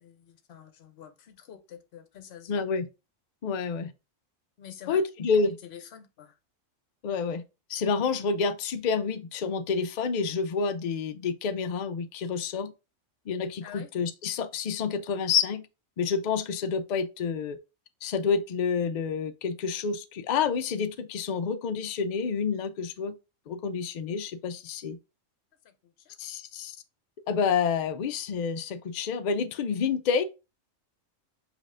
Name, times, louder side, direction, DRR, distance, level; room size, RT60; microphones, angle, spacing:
voice 1, 0.0-2.7 4.6-5.0 5.3-6.4 13.6-13.9 25.6-26.2, left 9 dB, 55° left, 0.9 m, -47 dB
voice 2, 2.5-2.9 3.4-3.9 4.9-5.6 7.0-7.4 7.7-12.7 13.3-15.7 16.0-17.6 18.0-23.1 23.5-25.0 26.2-26.8 27.3-30.2, left 5 dB, 75° left, 0.4 m, -28 dB
5.3 x 2.7 x 3.6 m
omnidirectional pair, 1.4 m